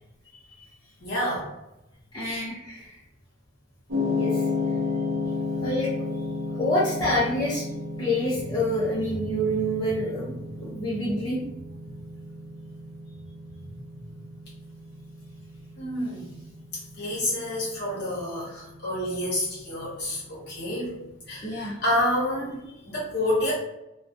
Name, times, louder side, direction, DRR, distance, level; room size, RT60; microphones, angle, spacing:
voice 1, 1.0-1.5 2.2-2.4 15.8-16.4 17.0-20.9 21.3-23.5, left 1 dB, 55° left, -6 dB, 0.8 m, -29 dB
voice 2, 2.1-3.0 4.1-4.5 5.6-6.1 6.5-7.6 8.0-11.4 11.9-12.0 21.4-21.8, equal, 20° left, -10 dB, 0.5 m, -27 dB
sound 1, 3.9-22.1, left 3 dB, 65° right, 0.6 m, -34 dB
2.2 x 2.1 x 2.6 m, 0.89 s
head